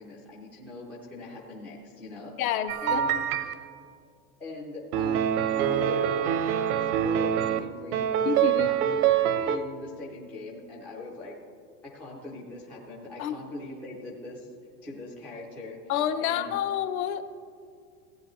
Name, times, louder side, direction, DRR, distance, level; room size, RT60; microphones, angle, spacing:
voice 1, 0.0-2.3 2.8-3.5 4.4-6.5 6.8-9.1 9.4-11.4 11.9-16.6, left 2 dB, 5° left, -5 dB, 0.3 m, -41 dB
voice 2, 2.4-3.0 8.2-8.7 13.2-13.3 15.9-17.3, left 9 dB, 60° left, 9 dB, 0.8 m, -28 dB
sound 1, 2.7-3.5 4.9-7.6 7.9-9.6, right 9 dB, 65° right, 0.8 m, -25 dB
16.0 x 9.6 x 3.0 m, 2.4 s
supercardioid pair, 160°, 47 cm